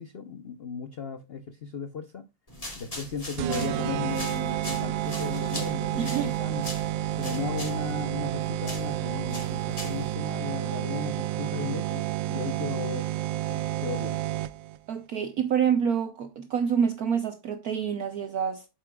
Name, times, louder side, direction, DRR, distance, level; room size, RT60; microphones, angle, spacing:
voice 1, 0.0-2.2 2.8-6.8 7.2-13.0 13.5-14.2, left 6 dB, 75° left, 0.5 m, -36 dB
sound 1, 2.5-10.2, left 1 dB, 20° left, 2.5 m, -41 dB
sound 2, 3.4-14.8, right 13 dB, 80° right, 1.3 m, -30 dB
voice 2, 6.0-6.3 14.9-18.7, right 7 dB, 60° right, 1.1 m, -27 dB
8.3 x 7.7 x 2.3 m
omnidirectional pair, 2.1 m